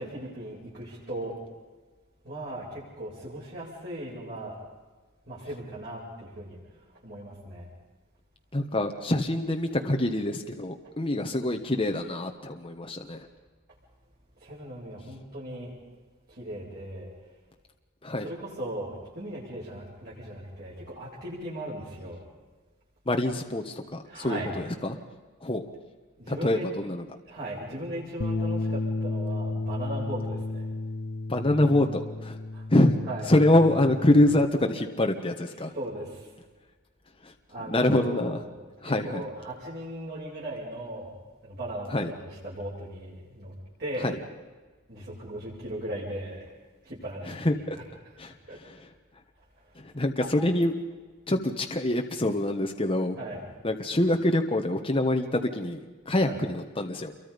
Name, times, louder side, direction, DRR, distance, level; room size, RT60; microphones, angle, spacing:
voice 1, 0.0-1.4 2.2-4.6 5.3-6.6 7.0-7.7 14.4-15.7 16.4-17.1 18.2-22.2 24.1-24.5 26.2-26.6 27.3-30.7 32.5-32.6 33.1-33.2 35.7-36.3 37.5-38.4 38.8-42.0 42.4-43.5 43.8-44.1 44.9-46.4 46.8-47.4 48.5-48.6 50.2-50.3 53.2-53.4 56.2-56.4, right 1 dB, 50° right, -8 dB, 7.7 m, -37 dB
voice 2, 8.5-13.3 18.0-18.3 23.1-25.0 25.4-25.6 26.3-27.0 31.3-32.4 32.7-33.0 33.3-35.7 37.2-37.3 37.7-38.4 38.8-39.3 41.9-42.1 44.0-44.2 47.3-47.8 48.2-48.9 49.7-50.8 51.3-53.2 53.6-55.8 56.0-57.1, left 1 dB, 25° left, 3 dB, 1.4 m, -25 dB
Bass guitar, 28.2-34.4, left 2 dB, 50° left, 0.6 m, -33 dB
28.5 x 23.5 x 5.3 m, 1.3 s
head